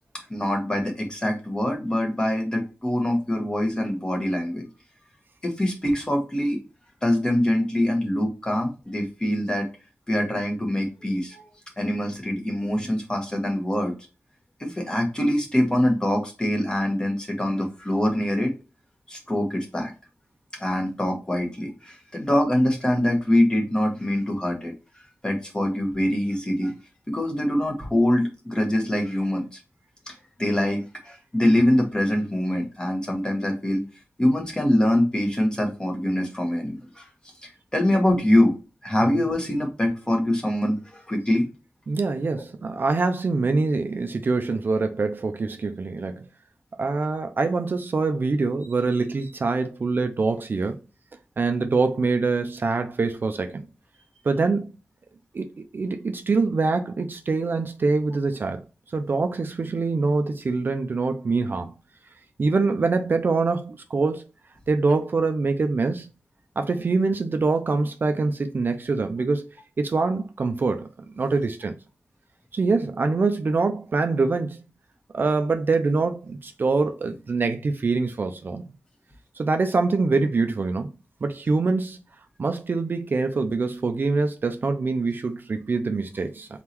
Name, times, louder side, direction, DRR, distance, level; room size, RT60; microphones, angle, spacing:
voice 1, 0.3-4.6 5.4-6.6 7.0-9.7 10.1-11.5 11.8-13.9 14.6-18.5 19.1-19.9 20.6-24.7 25.2-26.7 27.1-29.6 30.1-33.8 34.2-37.1 37.4-38.6 38.8-41.5, left 1 dB, 20° left, 1.2 m, -24 dB
voice 2, 41.9-46.3 46.8-50.8 51.4-53.6 54.2-54.7 55.3-55.5 55.7-58.6 58.9-61.7 62.4-64.2 64.7-66.1 66.6-69.5 69.8-70.9 71.2-71.7 72.5-74.6 75.1-78.7 79.4-80.9 81.2-82.0 82.4-86.5, right 3 dB, 50° right, 0.5 m, -24 dB
3.9 x 3.7 x 3.0 m
wide cardioid pair, 130°, 4 cm